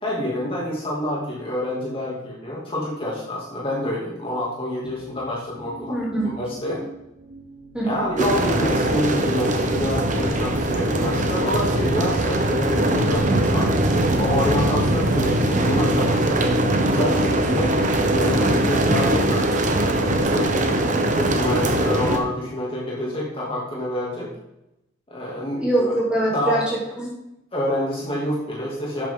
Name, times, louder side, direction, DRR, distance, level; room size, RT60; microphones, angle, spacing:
voice 1, 0.0-6.0 6.4-6.8 7.8-13.7 14.2-16.4 16.7-17.8 18.1-20.7 21.2-24.3 25.1-26.0 26.3-26.6 27.5-29.1, left 1 dB, 25° left, -5 dB, 2.6 m, -27 dB
sound 1, 4.8-13.0, right 3 dB, 50° right, 2.7 m, -39 dB
voice 2, 5.9-6.3 7.7-8.0 25.6-27.1, right 1 dB, 5° right, -6 dB, 3.3 m, -23 dB
sound 2, 8.2-22.2, right 1 dB, 35° right, 1.0 m, -21 dB
11.5 x 8.3 x 3.9 m, 0.86 s
head